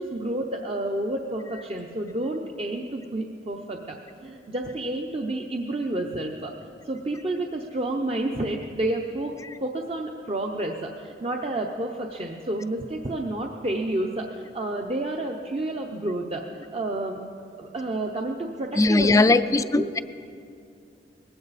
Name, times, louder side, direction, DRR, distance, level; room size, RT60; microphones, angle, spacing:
voice 1, 0.0-6.5 6.8-9.3 9.6-17.2 17.6-19.4 19.7-19.8, right 1 dB, 35° right, 1 dB, 0.7 m, -30 dB
voice 2, 18.8-20.0, left 2 dB, 20° left, 12 dB, 0.4 m, -19 dB
19.0 x 15.5 x 4.1 m, 2.4 s
head